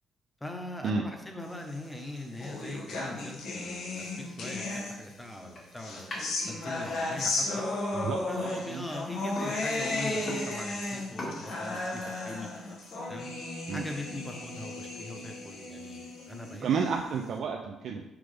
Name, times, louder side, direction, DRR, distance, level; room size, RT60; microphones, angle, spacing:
voice 1, 0.4-7.6 8.3-12.5 13.1-13.3 13.7-16.7, left 1 dB, 10° left, 2 dB, 1.1 m, -41 dB
sound 1, 1.8-5.3 5.8-17.2, left 2 dB, 75° left, 1.2 m, -35 dB
sound 2, 3.9-12.9, left 1 dB, 45° left, 1.7 m, -45 dB
voice 2, 7.9-8.8 13.7-13.8 16.6-18.0, right 5 dB, 65° right, 1 dB, 0.5 m, -31 dB
6.2 x 5.1 x 3.4 m, 0.98 s
cardioid pair, 90°, 0 cm